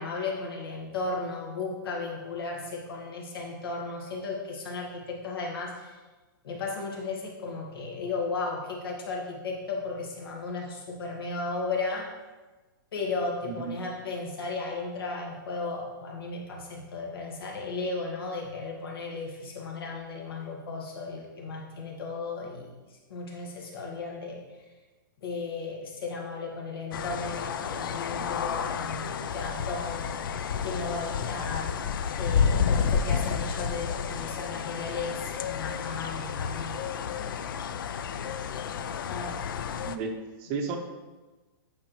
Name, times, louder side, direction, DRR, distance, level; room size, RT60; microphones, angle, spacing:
voice 1, 0.0-6.0 6.4-12.1 12.9-24.4 25.2-30.2 30.6-31.8 32.2-36.8 37.1-37.5 39.0-39.5, left 3 dB, 80° left, -1 dB, 1.8 m, -35 dB
voice 2, 13.5-13.9 39.9-40.1 40.4-40.8, right 5 dB, 30° right, 4 dB, 0.6 m, -33 dB
sound 1, 26.9-40.0, left 7 dB, 65° left, 0.4 m, -30 dB
8.7 x 4.8 x 3.1 m, 1.2 s
hypercardioid pair, 165°, 12 cm